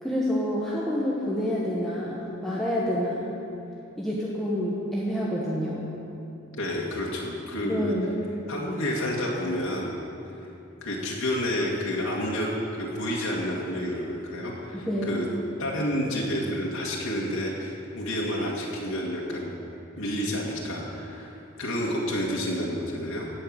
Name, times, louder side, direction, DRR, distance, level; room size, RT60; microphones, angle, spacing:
voice 1, 0.0-3.3 4.0-5.9 7.6-8.2 14.9-15.2, equal, ahead, -6 dB, 1.2 m, -28 dB
voice 2, 6.5-7.9 8.5-9.9 10.8-15.3 15.6-19.5 20.0-23.3, equal, 90° left, -4 dB, 1.9 m, -29 dB
14.0 x 5.7 x 8.8 m, 2.9 s
head